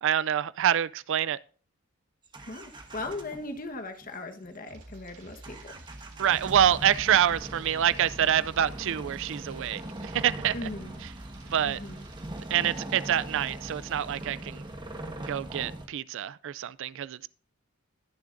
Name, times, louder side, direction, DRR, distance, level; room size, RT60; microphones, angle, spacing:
voice 1, 0.0-1.4 6.2-10.5 11.5-11.8 12.5-14.6 15.3-17.3, right 10 dB, 60° right, 0.4 m, -26 dB
sound 1, 2.2-3.7 4.0-4.2 4.4-4.9 5.4-15.9, right 1 dB, 20° right, 1.3 m, -41 dB
voice 2, 2.5-5.8 10.5-10.9 11.6-12.0, left 2 dB, 40° left, 1.3 m, -38 dB
sound 2, 4.7-13.0, right 2 dB, 75° right, 3.5 m, -49 dB
21.0 x 7.0 x 2.6 m
head